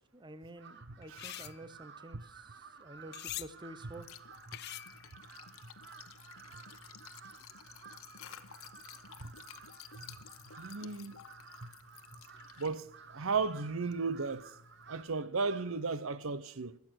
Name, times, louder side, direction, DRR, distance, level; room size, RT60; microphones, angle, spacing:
voice 1, 0.1-4.1, right 1 dB, 20° right, 0.8 m, -50 dB
Crow, 0.5-15.9, right 6 dB, 50° right, 1.1 m, -55 dB
sound 1, 1.0-1.6 3.1-3.5 4.5-5.1, left 14 dB, 50° left, 0.5 m, -43 dB
Liquid, 3.8-15.0, left 7 dB, 75° left, 1.0 m, -54 dB
voice 2, 10.6-11.2 11.6-11.7 12.6-14.5 14.9-16.8, right 4 dB, 70° right, 0.8 m, -35 dB
21.0 x 8.3 x 6.5 m
head